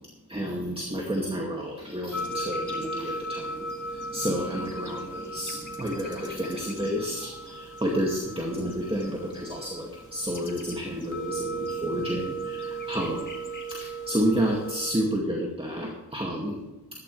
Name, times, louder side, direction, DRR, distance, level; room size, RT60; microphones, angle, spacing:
voice 1, 0.3-13.3 13.7-16.6, equal, 15° right, -2 dB, 2.3 m, -30 dB
sound 1, 2.1-14.9, right 2 dB, 50° left, 2.5 m, -36 dB
15.0 x 13.5 x 3.4 m, 1.1 s
wide cardioid pair, 80°, 38 cm